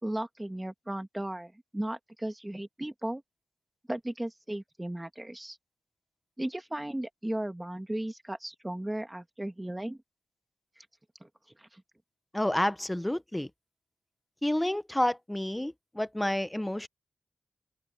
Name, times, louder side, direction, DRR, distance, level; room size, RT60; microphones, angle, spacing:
voice 1, 0.0-3.2 3.9-5.6 6.4-10.0 10.8-10.9 11.2-11.3 11.6-11.8, right 1 dB, 10° right, 2.0 m, -36 dB
voice 2, 12.3-13.5 14.4-16.9, left 1 dB, 10° left, 0.8 m, -29 dB
wide cardioid pair, 95°, 0 cm